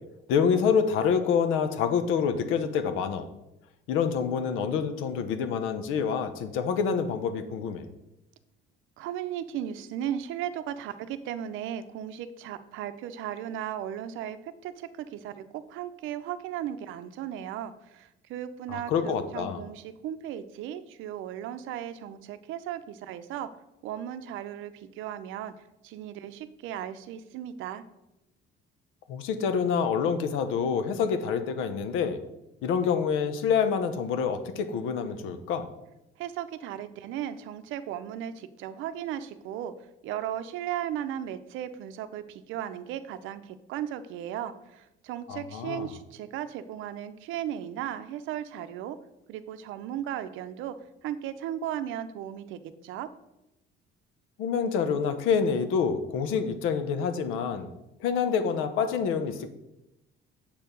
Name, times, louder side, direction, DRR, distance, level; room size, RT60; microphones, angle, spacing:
voice 1, 0.3-3.3 3.9-7.9 18.7-19.6 29.1-32.2 32.6-35.7 45.3-45.9 54.4-57.7 58.0-59.5, left 6 dB, 80° left, 10 dB, 0.9 m, -27 dB
voice 2, 9.0-23.5 23.8-25.5 25.8-27.8 36.2-39.7 40.0-49.0 49.3-50.7 51.0-53.1, right 10 dB, 75° right, 12 dB, 0.6 m, -36 dB
7.2 x 4.6 x 5.2 m, 0.91 s
cardioid pair, 115°, 20 cm